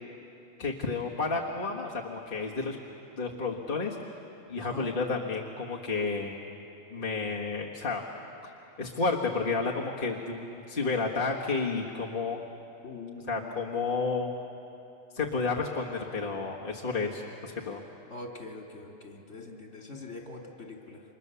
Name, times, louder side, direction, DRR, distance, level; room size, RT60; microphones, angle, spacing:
voice 1, 0.6-2.8 3.1-4.0 4.5-6.4 6.9-8.0 8.4-8.5 8.8-12.4 13.3-14.3 15.1-17.8, left 4 dB, 40° left, -2 dB, 1.7 m, -31 dB
voice 2, 4.6-4.9 12.8-13.5 18.1-21.0, left 2 dB, 60° left, 0 dB, 3.3 m, -43 dB
30.0 x 25.5 x 6.9 m, 2.8 s
omnidirectional pair, 1.4 m